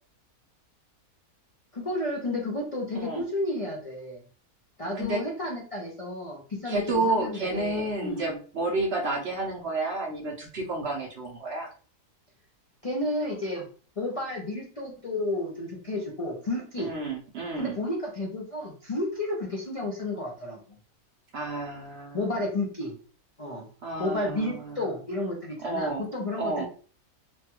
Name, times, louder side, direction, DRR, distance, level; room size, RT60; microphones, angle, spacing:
voice 1, 1.7-4.2 4.8-8.2 12.8-13.7 14.0-16.9 17.6-20.6 22.1-22.9 23.4-23.7 24.0-26.7, left 1 dB, 60° left, -2 dB, 0.3 m, -32 dB
voice 2, 6.7-11.7 16.8-17.8 21.3-22.2 23.8-24.8 25.6-26.0 26.4-26.7, right 2 dB, 60° right, 0 dB, 0.7 m, -30 dB
3.1 x 2.2 x 2.9 m, 0.40 s
omnidirectional pair, 1.6 m